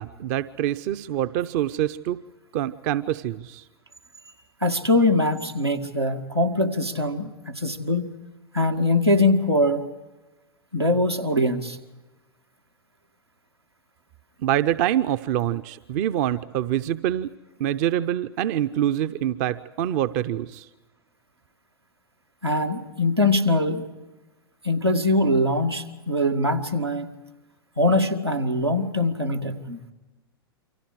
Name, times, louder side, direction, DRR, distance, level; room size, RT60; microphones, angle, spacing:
voice 1, 0.0-2.2 2.5-3.6 14.4-17.3 17.6-20.7, right 11 dB, 40° right, 13 dB, 0.7 m, -25 dB
voice 2, 4.6-8.1 8.5-9.9 10.7-11.8 22.4-23.8 24.6-27.1 27.8-29.8, left 1 dB, 90° right, 2 dB, 2.1 m, -22 dB
29.0 x 25.0 x 4.8 m, 1.2 s
figure-of-eight pair, 95°, 13 cm